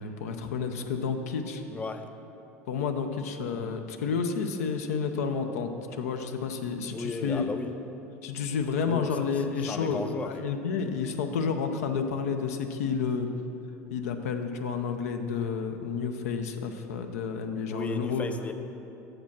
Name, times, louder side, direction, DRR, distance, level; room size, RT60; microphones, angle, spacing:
voice 1, 0.0-1.6 2.7-7.5 8.2-13.3 13.9-18.3, left 5 dB, 75° left, 6 dB, 0.6 m, -30 dB
voice 2, 1.7-2.0 3.5-3.7 6.9-7.7 8.9-9.2 9.7-10.3 17.7-18.5, left 3 dB, 15° left, 8 dB, 0.4 m, -35 dB
7.2 x 5.1 x 6.0 m, 2.8 s
hypercardioid pair, 85°, 8 cm